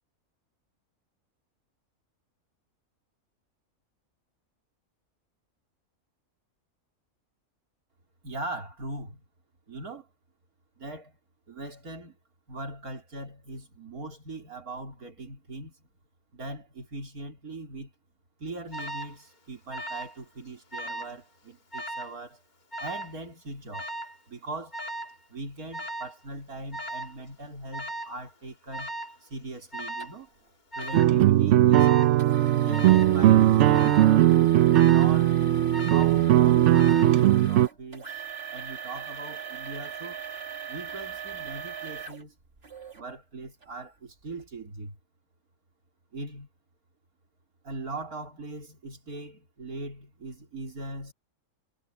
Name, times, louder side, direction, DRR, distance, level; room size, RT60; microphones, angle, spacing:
voice 1, 8.2-9.2 9.7-10.1 10.8-11.2 11.5-12.2 12.5-15.7 16.3-17.9 18.4-22.4 22.8-23.9 24.3-24.8 25.3-28.9 29.2-30.3 30.7-31.9 32.5-34.0 34.8-35.4 35.8-38.2 38.5-40.2 40.7-42.3 43.0-45.0 46.1-46.5 47.6-51.1, right 2 dB, 90° right, 4.1 m, -40 dB
Alarm, 18.7-19.2 19.7-20.2 20.5-21.2 21.7-22.1 22.7-23.2 23.7-24.2 24.7-25.2 25.7-26.2 26.7-27.2 27.7-28.2 28.7-29.2 29.7-30.2 30.7-31.2 31.7-32.2 32.7-33.2 33.7-34.2 34.7-35.2 35.7-36.2 36.7-37.2, right 1 dB, 30° left, 1.6 m, -37 dB
sound 1, 30.0-30.1 30.8-31.0 32.2-43.0 43.6-43.7 44.3-44.4, right 5 dB, 45° right, 2.2 m, -41 dB
sound 2, 30.9-37.7, right 13 dB, 65° right, 0.8 m, -19 dB
omnidirectional pair, 1.5 m